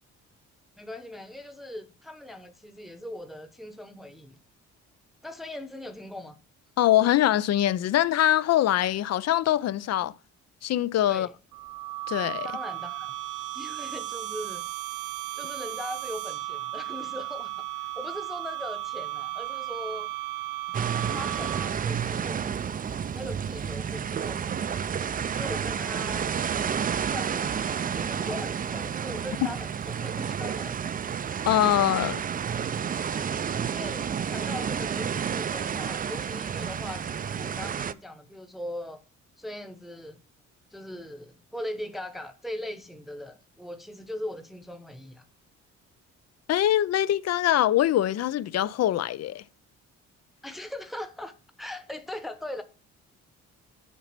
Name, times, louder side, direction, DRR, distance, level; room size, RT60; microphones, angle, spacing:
voice 1, 0.8-4.4 5.2-6.4 11.1-11.3 12.4-13.1 13.5-14.7 15.3-20.1 21.1-22.8 23.1-24.5 25.3-26.3 27.0-27.6 28.0-30.8 32.0-32.2 33.7-39.0 39.4-40.2 40.7-45.2 50.4-51.3 51.6-52.6, left 1 dB, ahead, 0.9 m, -40 dB
voice 2, 6.8-10.2 10.6-11.3 12.1-12.5 31.5-32.2 46.5-49.4, left 12 dB, 60° left, 0.5 m, -23 dB
sound 1, 11.5-21.9, right 16 dB, 85° right, 0.6 m, -35 dB
sound 2, 20.7-37.9, right 7 dB, 30° right, 0.4 m, -30 dB
7.3 x 4.0 x 6.0 m
cardioid pair, 90°, 30 cm